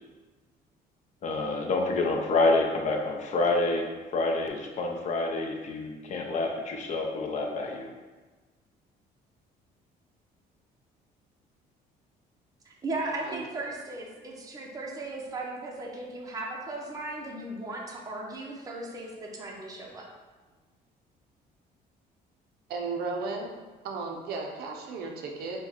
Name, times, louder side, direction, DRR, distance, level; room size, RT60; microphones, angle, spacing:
voice 1, 1.2-3.9 4.1-7.9, left 2 dB, 45° left, 2 dB, 0.6 m, -27 dB
voice 2, 12.6-20.1, right 2 dB, 20° right, -2 dB, 0.6 m, -37 dB
voice 3, 22.7-23.6 23.8-25.7, right 3 dB, 70° right, 1 dB, 0.5 m, -34 dB
4.6 x 2.2 x 2.9 m, 1.3 s
cardioid pair, 110°, 17 cm